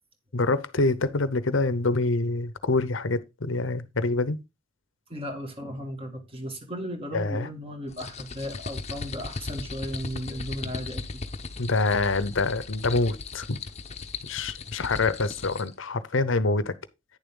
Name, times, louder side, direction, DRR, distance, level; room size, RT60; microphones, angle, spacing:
voice 1, 0.3-4.4 7.1-7.5 11.6-13.6 14.3-16.7, left 3 dB, 70° left, 0.8 m, -26 dB
voice 2, 5.1-11.2, equal, 30° right, 2.0 m, -36 dB
sound 1, 7.9-15.7, left 3 dB, 35° left, 0.8 m, -37 dB
9.8 x 7.0 x 3.8 m
head